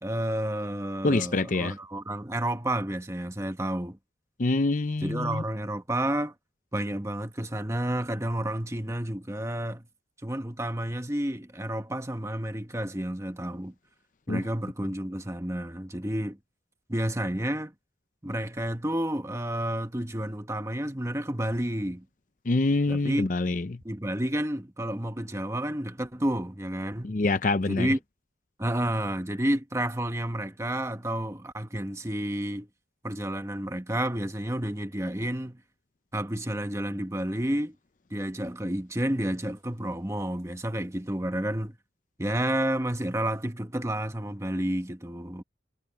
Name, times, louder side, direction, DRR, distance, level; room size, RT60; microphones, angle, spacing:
voice 1, 0.0-4.0 5.0-6.3 6.7-9.9 10.2-13.7 14.3-16.4 16.9-17.7 18.2-22.0 22.9-23.3 23.8-27.1 27.7-28.0 28.6-32.7 33.0-35.6 36.1-37.7 38.1-41.7 42.2-45.4, right 1 dB, 15° right, 1.2 m, -30 dB
voice 2, 1.0-1.7 4.4-5.4 14.3-14.4 22.5-23.8 27.0-27.9, left 2 dB, 45° left, 0.6 m, -25 dB
head